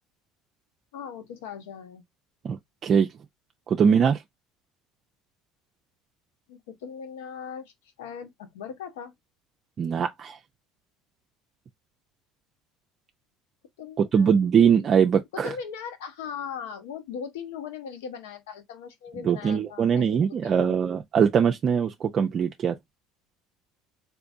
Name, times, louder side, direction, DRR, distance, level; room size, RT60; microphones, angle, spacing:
voice 1, 0.9-2.0 6.5-7.7 8.0-9.1 13.8-14.4 15.3-20.8, left 7 dB, 85° left, 0.8 m, -39 dB
voice 2, 2.4-3.1 3.7-4.2 9.8-10.4 14.1-15.5 19.2-22.7, right 7 dB, 40° right, 0.4 m, -22 dB
3.5 x 2.9 x 2.5 m
supercardioid pair, 90°, 0 cm